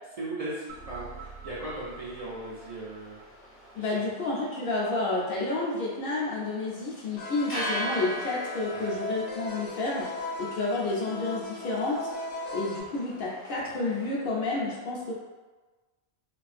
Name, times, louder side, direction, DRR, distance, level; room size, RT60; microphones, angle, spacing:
voice 1, 0.2-3.2 3.7-4.0 8.7-9.0, right 2 dB, 55° right, -8 dB, 0.4 m, -38 dB
sound 1, 0.7-14.1, equal, 20° left, 0.3 m, -42 dB
sound 2, 0.7-3.8, right 5 dB, 80° right, 0.9 m, -47 dB
voice 2, 3.8-12.1 12.5-15.1, left 3 dB, 60° left, -5 dB, 0.7 m, -30 dB
sound 3, 7.2-12.8, left 1 dB, 90° left, 0.9 m, -38 dB
2.4 x 2.4 x 2.4 m, 1.2 s
omnidirectional pair, 1.2 m